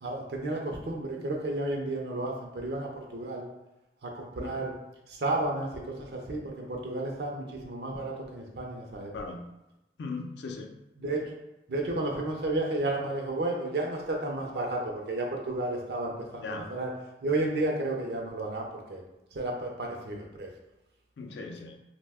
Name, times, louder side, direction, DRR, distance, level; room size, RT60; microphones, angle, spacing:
voice 1, 0.0-3.4 4.0-4.7 5.1-9.1 11.0-11.2 11.7-16.9 17.2-19.0 19.3-20.5, right 2 dB, 70° right, 0 dB, 0.5 m, -32 dB
voice 2, 9.1-9.4 10.0-10.8 16.4-16.7 21.2-21.8, left 4 dB, 80° left, 4 dB, 0.4 m, -38 dB
2.6 x 2.1 x 3.4 m, 0.94 s
head